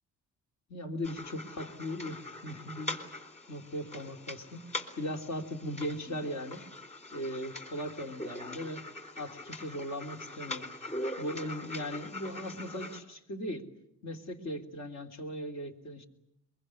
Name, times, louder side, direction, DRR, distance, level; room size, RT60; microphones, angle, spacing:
voice 1, 0.7-3.0 3.5-6.6 7.1-8.8 9.2-10.7 11.2-13.7 14.0-16.1, equal, 60° left, 4 dB, 3.3 m, -38 dB
sound 1, 1.0-13.0, left 2 dB, 20° left, 4.1 m, -42 dB
23.0 x 23.0 x 9.8 m, 0.79 s
cardioid pair, 90°, 30 cm